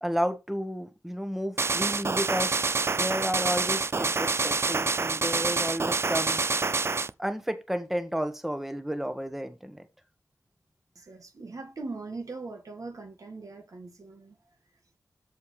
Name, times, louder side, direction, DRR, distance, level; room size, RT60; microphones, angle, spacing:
voice 1, 0.0-2.6 2.9-6.4 7.2-9.9, equal, 5° right, 1.2 m, -32 dB
sound 1, 1.6-7.1, right 4 dB, 45° right, 0.4 m, -27 dB
voice 2, 11.0-14.4, right 3 dB, 70° right, 1.8 m, -40 dB
13.5 x 4.7 x 3.3 m
wide cardioid pair, 70°, 6 cm